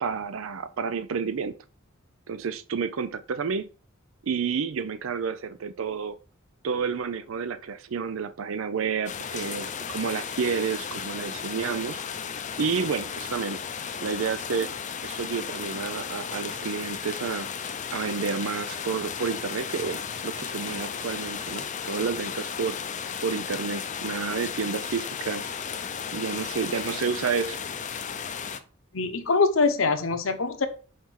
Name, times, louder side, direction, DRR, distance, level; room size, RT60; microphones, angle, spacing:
voice 1, 0.0-1.6 2.3-3.7 4.2-6.2 6.6-12.0 12.6-13.6 14.0-14.7 15.0-17.5 17.9-22.8 23.2-25.5 26.1-27.6, right 6 dB, 75° right, 0.5 m, -30 dB
sound 1, 9.1-28.6, left 7 dB, 35° left, 0.5 m, -34 dB
voice 2, 28.9-30.7, left 4 dB, 75° left, 1.0 m, -23 dB
5.8 x 4.2 x 4.7 m
head